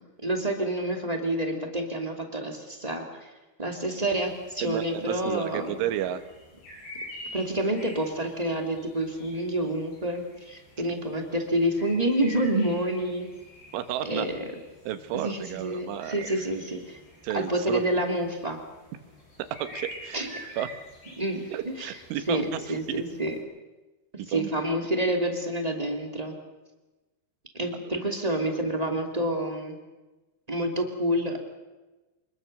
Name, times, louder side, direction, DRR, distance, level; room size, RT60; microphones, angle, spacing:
voice 1, 0.2-3.3 3.6-5.8 7.3-13.3 14.0-14.5 15.1-17.0 17.3-18.6 20.1-20.3 21.2-21.4 21.8-21.9 22.3-23.3 24.3-26.4 27.5-29.8 30.5-31.5, right 1 dB, 15° right, 3 dB, 1.7 m, -28 dB
sound 1, 4.1-23.4, equal, 60° left, 9.9 m, -47 dB
voice 2, 4.6-6.3 10.8-10.9 13.7-14.3 14.9-16.2 17.2-17.8 19.6-20.3 20.6-20.7 21.5-22.8 24.2-24.5, right 11 dB, 85° right, 10 dB, 3.8 m, -32 dB
26.0 x 21.5 x 6.8 m, 1.1 s
omnidirectional pair, 5.4 m